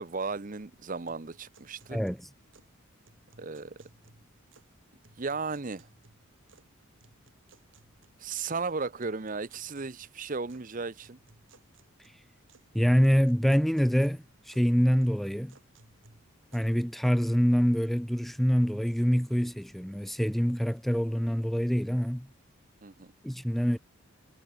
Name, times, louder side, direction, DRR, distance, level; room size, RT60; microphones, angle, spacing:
voice 1, 0.0-2.0 3.4-3.7 5.2-5.9 8.2-11.2 22.8-23.1, right 4 dB, 40° right, 0.8 m, -35 dB
sound 1, 1.1-2.8 3.0-4.8 5.0-6.7 7.0-8.6 9.0-10.7 11.0-12.7 13.0-14.7 15.0-17.1, right 3 dB, 60° right, 2.6 m, -61 dB
voice 2, 1.9-2.3 12.7-15.6 16.5-22.3 23.2-23.8, equal, ahead, 0.4 m, -25 dB
head